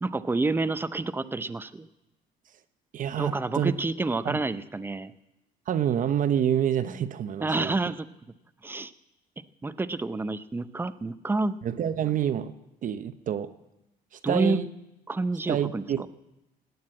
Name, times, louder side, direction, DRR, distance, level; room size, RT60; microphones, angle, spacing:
voice 1, 0.0-1.9 3.2-5.1 7.4-8.1 8.6-8.9 9.6-11.6 14.2-14.6 15.1-16.1, right 3 dB, 10° right, 13 dB, 0.6 m, -28 dB
voice 2, 2.9-3.7 4.2-4.4 5.7-7.8 11.6-12.5 12.8-13.5 14.1-14.7 15.5-16.1, right 9 dB, 50° right, 11 dB, 0.8 m, -27 dB
17.0 x 9.6 x 8.7 m, 0.93 s
cardioid pair, 110°, 17 cm